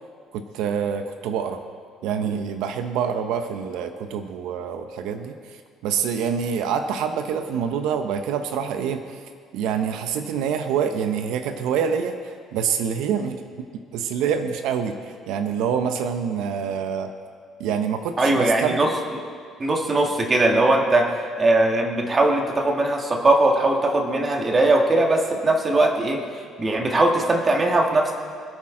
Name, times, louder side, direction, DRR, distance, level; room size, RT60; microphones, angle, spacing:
voice 1, 0.3-1.6 2.0-5.6 5.8-9.2 9.5-17.1 17.6-18.8, right 7 dB, 80° right, 7 dB, 0.8 m, -26 dB
voice 2, 18.2-18.9 19.6-26.2 26.6-28.1, right 2 dB, 20° right, 1 dB, 1.6 m, -20 dB
25.0 x 8.7 x 3.8 m, 2.1 s
cardioid pair, 160°, 0 cm